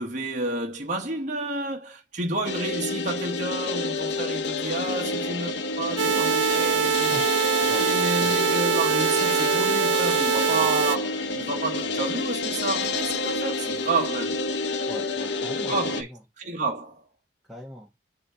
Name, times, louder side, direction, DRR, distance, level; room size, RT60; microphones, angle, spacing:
voice 1, 0.0-7.1 7.8-14.4 15.6-16.1 16.4-17.0, right 2 dB, 40° right, 1.0 m, -30 dB
sound 1, 2.4-16.0, left 3 dB, 65° left, 0.8 m, -29 dB
sound 2, 6.0-11.0, right 7 dB, 85° right, 0.4 m, -23 dB
voice 2, 14.9-16.2 17.5-17.9, left 1 dB, ahead, 1.1 m, -39 dB
6.7 x 2.8 x 5.5 m
head